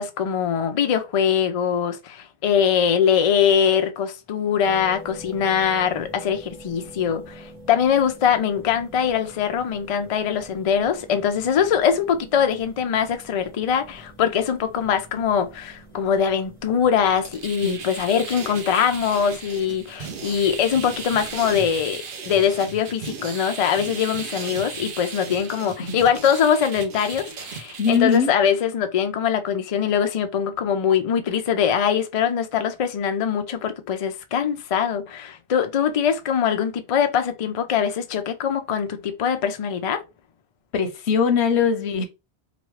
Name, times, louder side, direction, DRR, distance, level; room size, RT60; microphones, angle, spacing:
voice 1, 0.0-40.0, left 8 dB, 50° left, 0.4 m, -22 dB
sound 1, 4.6-21.5, right 1 dB, 35° right, 1.0 m, -46 dB
sound 2, 17.1-28.2, right 6 dB, 60° right, 0.7 m, -36 dB
voice 2, 27.8-28.3 40.7-42.0, left 6 dB, 90° left, 0.9 m, -21 dB
2.9 x 2.3 x 3.1 m
omnidirectional pair, 1.1 m